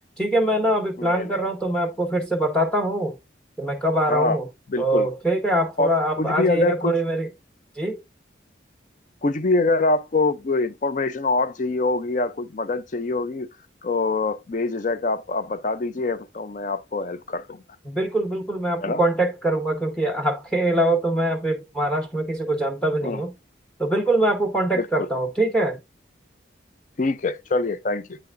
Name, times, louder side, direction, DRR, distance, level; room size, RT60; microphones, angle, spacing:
voice 1, 0.2-3.1 3.6-4.5 4.8-7.3 7.8-8.0 17.8-23.3 23.8-25.8, right 1 dB, 5° left, 0.9 m, -23 dB
voice 2, 1.0-1.4 4.1-4.4 4.7-5.1 5.8-6.9 9.2-13.5 13.8-17.6 18.8-19.0 23.0-23.2 24.7-25.1 27.0-28.2, left 3 dB, 40° left, 0.5 m, -24 dB
8.6 x 5.7 x 2.5 m
head